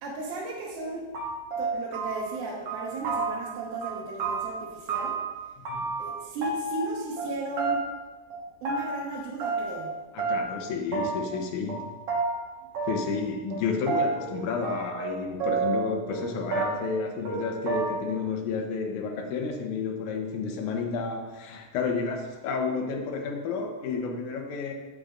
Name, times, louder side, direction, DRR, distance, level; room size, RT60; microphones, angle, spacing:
voice 1, 0.0-1.1 1.6-5.2 6.0-7.8 8.6-9.9, right 3 dB, 85° right, -5 dB, 2.8 m, -35 dB
sound 1, 0.8-0.9 1.1-2.4 2.7-3.5 3.8-5.3 5.6-6.1 6.4-7.3 7.6-8.0 8.3-9.0 9.4-9.9 10.2-10.6 10.9-11.4 11.7-11.8 12.1-12.3 12.7-13.2 13.5-15.1 15.4-16.2 16.5-17.0 17.2-17.4 17.7-18.1, right 4 dB, 55° right, 1.8 m, -30 dB
voice 2, 10.1-11.9 12.9-24.7, left 5 dB, 75° left, 3 dB, 2.0 m, -31 dB
8.5 x 7.7 x 2.5 m, 1.2 s
omnidirectional pair, 4.1 m